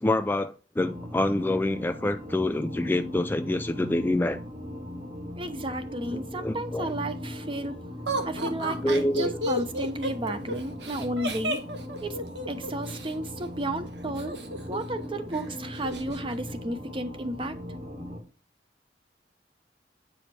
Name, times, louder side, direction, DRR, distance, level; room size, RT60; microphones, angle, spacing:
voice 1, 0.0-4.4 6.1-6.9 8.8-9.3, left 1 dB, 10° left, 0.3 m, -27 dB
sound 1, 0.8-18.2, left 1 dB, 45° right, 1.9 m, -39 dB
voice 2, 5.4-7.8 8.2-11.6 12.0-14.3 14.7-17.6, right 1 dB, 30° right, 0.9 m, -33 dB
Laughter, 8.1-13.1 14.2-15.0 15.3-15.4 15.8-16.2, right 1 dB, 70° right, 1.4 m, -32 dB
8.6 x 5.0 x 4.3 m
head